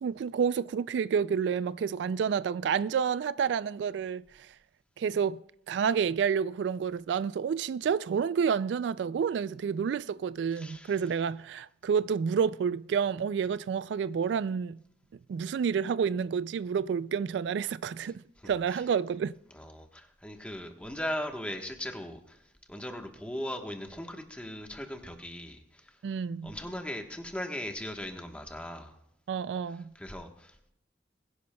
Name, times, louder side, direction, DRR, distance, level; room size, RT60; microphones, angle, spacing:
voice 1, 0.0-4.5 5.0-5.4 5.7-14.8 15.3-19.3 26.0-26.5 29.3-29.9, right 7 dB, 75° right, 0.3 m, -29 dB
voice 2, 10.5-11.0 18.0-18.1 18.7-18.8 19.5-29.0 29.7-30.7, left 1 dB, 5° left, 1.2 m, -39 dB
21.5 x 10.5 x 2.3 m
head